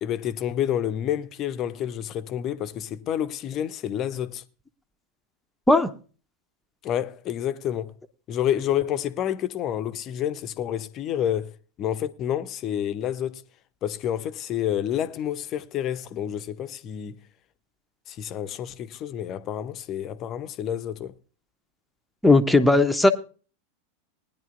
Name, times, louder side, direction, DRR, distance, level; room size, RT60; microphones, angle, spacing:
voice 1, 0.0-4.4 6.8-7.9 8.3-11.5 11.8-13.4 13.8-17.2 18.1-21.1, left 10 dB, 35° left, 0.7 m, -29 dB
voice 2, 22.2-23.1, left 2 dB, 5° left, 0.9 m, -17 dB
20.0 x 10.5 x 2.5 m
figure-of-eight pair, 85°, 0 cm